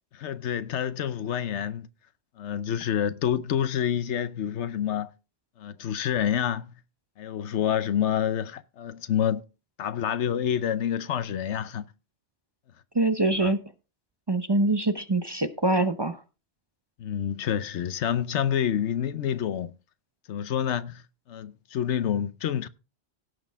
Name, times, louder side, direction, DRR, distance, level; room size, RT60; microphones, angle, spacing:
voice 1, 0.1-1.9 2.4-5.1 5.6-6.7 7.2-9.4 9.8-11.9 13.4-13.5 17.0-19.7 20.3-22.7, left 9 dB, 85° left, 1.0 m, -28 dB
voice 2, 12.9-13.6 14.3-16.2, right 2 dB, 25° right, 0.7 m, -24 dB
17.0 x 6.3 x 3.5 m
omnidirectional pair, 1.2 m